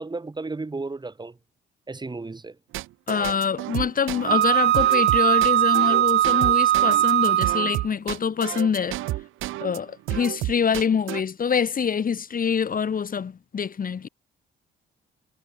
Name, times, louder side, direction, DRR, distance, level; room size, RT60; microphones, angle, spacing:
voice 1, 0.0-1.4 1.9-2.6, right 3 dB, 20° right, 3.9 m, -33 dB
sound 1, 2.7-9.8 10.1-11.2, right 16 dB, 90° right, 1.3 m, -31 dB
voice 2, 3.1-9.0 9.6-14.1, left 6 dB, 45° left, 3.1 m, -25 dB
Wind instrument woodwind instrument, 4.3-7.9, right 12 dB, 60° right, 0.6 m, -20 dB
cardioid pair, 90°, 20 cm